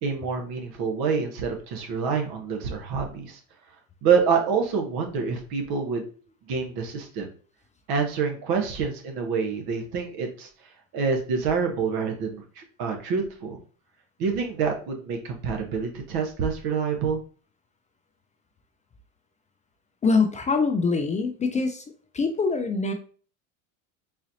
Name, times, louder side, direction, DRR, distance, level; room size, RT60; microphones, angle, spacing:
voice 1, 0.0-3.4 4.0-6.0 6.5-7.3 7.9-10.5 10.9-13.6 14.2-17.2, right 5 dB, 60° right, 3 dB, 1.0 m, -27 dB
voice 2, 20.0-21.8 22.1-22.9, left 4 dB, 20° left, 6 dB, 0.3 m, -24 dB
4.0 x 2.8 x 2.7 m, 0.42 s
hypercardioid pair, 85°, 42 cm